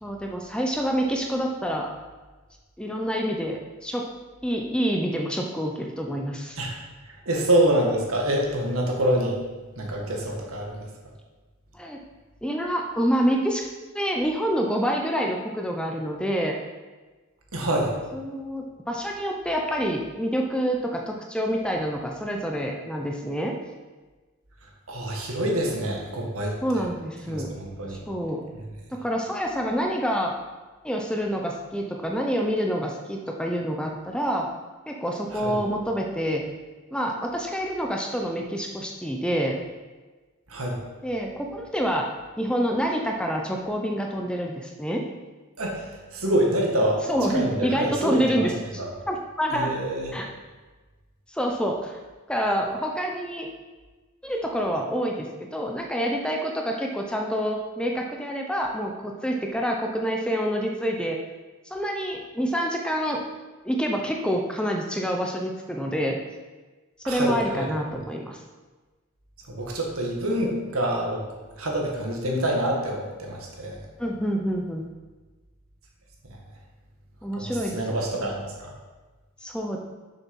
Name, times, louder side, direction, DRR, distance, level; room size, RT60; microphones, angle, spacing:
voice 1, 0.0-1.9 2.8-4.1 4.4-6.6 7.3-7.4 11.7-12.0 12.4-13.7 13.9-16.6 18.1-23.6 26.6-27.5 28.1-28.5 28.9-30.4 30.8-34.5 34.9-36.5 36.9-39.6 41.0-42.1 42.4-45.1 47.1-49.8 50.1-50.3 51.3-52.0 52.3-53.5 54.2-61.2 61.6-63.2 63.6-66.2 67.0-68.4 74.0-74.9 77.2-77.8 78.1-78.3 79.4-79.8, equal, 5° left, 1 dB, 0.7 m, -27 dB
voice 2, 7.1-9.4 9.8-10.9 17.5-18.0 24.9-26.9 27.3-28.0 28.5-28.6 35.4-35.6 40.5-40.8 45.6-47.0 47.3-48.5 48.8-48.9 49.5-50.1 67.0-67.7 69.5-71.3 71.6-73.8 76.3-76.4 77.4-78.7, right 1 dB, 80° right, 0 dB, 1.9 m, -26 dB
7.0 x 6.8 x 5.5 m, 1.3 s
head